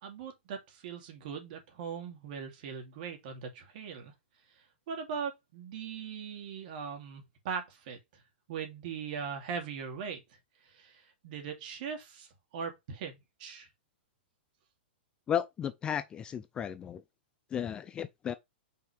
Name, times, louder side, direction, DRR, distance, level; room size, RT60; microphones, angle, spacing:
voice 1, 0.0-4.1 4.9-8.0 8.5-10.2 10.6-12.3 12.5-13.7, right 6 dB, 50° right, 2.6 m, -40 dB
voice 2, 15.3-17.0 17.5-18.3, left 9 dB, 15° left, 0.3 m, -34 dB
5.7 x 3.9 x 4.9 m
hypercardioid pair, 155°, 6 cm